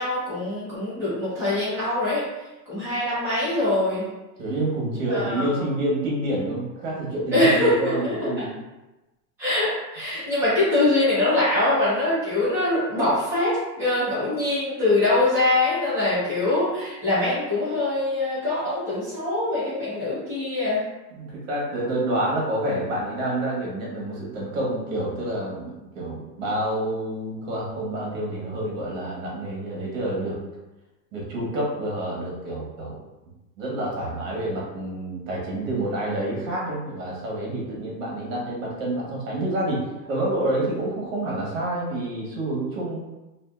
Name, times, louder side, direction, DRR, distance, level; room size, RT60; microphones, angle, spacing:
voice 1, 0.0-2.2 2.7-4.0 5.1-5.6 7.3-8.3 9.4-20.8, left 2 dB, 5° right, -14 dB, 0.6 m, -23 dB
voice 2, 4.4-8.6 21.1-30.4 31.1-33.0 33.6-43.0, right 1 dB, 50° right, -4 dB, 1.1 m, -28 dB
2.7 x 2.5 x 2.3 m, 1.0 s
supercardioid pair, 175°, 50 cm